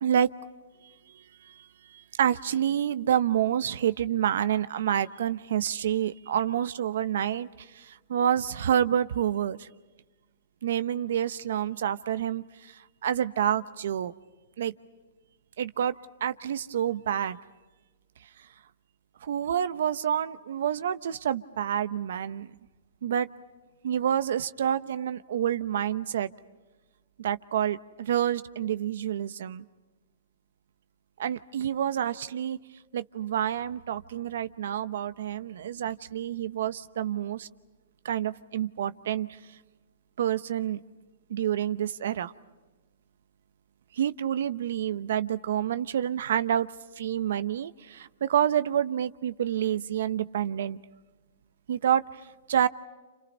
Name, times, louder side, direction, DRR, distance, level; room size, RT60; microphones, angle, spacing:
voice 1, 0.0-0.3 0.8-9.7 10.6-14.1 14.6-14.7 15.6-15.9 16.2-17.4 18.4-18.5 19.2-22.5 23.0-23.3 23.8-26.3 27.2-29.6 31.2-32.6 32.9-37.5 38.0-39.4 40.2-40.8 41.3-42.3 43.9-46.7 47.0-50.8 51.7-52.7, right 10 dB, 70° right, 13 dB, 0.9 m, -28 dB
29.5 x 28.5 x 5.5 m, 1.2 s
hypercardioid pair, 155°, 0 cm